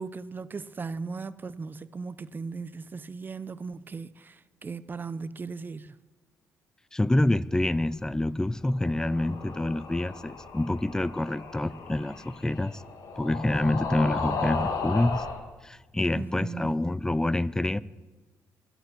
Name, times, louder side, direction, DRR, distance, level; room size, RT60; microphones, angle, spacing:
voice 1, 0.0-6.0 16.1-16.7, right 4 dB, 30° right, 0.6 m, -37 dB
voice 2, 6.9-12.8 13.2-15.3 15.6-17.8, left 1 dB, 10° left, 0.5 m, -27 dB
sound 1, 8.7-15.4, left 4 dB, 75° left, 2.2 m, -35 dB
23.5 x 9.2 x 6.1 m
cardioid pair, 105°, 6 cm